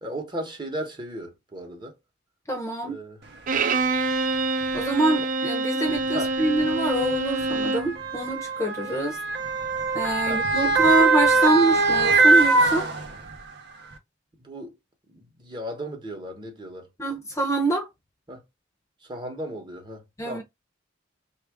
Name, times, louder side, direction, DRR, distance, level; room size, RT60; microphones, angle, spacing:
voice 1, 0.0-1.9 2.8-3.2 6.1-6.3 10.3-11.0 14.4-14.7 15.1-16.9 18.3-18.4 19.0-20.4, right 1 dB, 25° right, 1.0 m, -36 dB
voice 2, 2.5-3.0 4.7-9.2 9.9-12.9 17.0-17.9 20.2-20.4, right 2 dB, 15° left, 0.6 m, -25 dB
Bowed string instrument, 3.5-8.0, right 3 dB, 45° right, 0.4 m, -26 dB
Motor vehicle (road) / Siren, 3.5-3.6 4.6-4.8 5.9-13.5 13.9-14.0, right 3 dB, 60° right, 0.8 m, -22 dB
3.3 x 2.5 x 3.4 m
head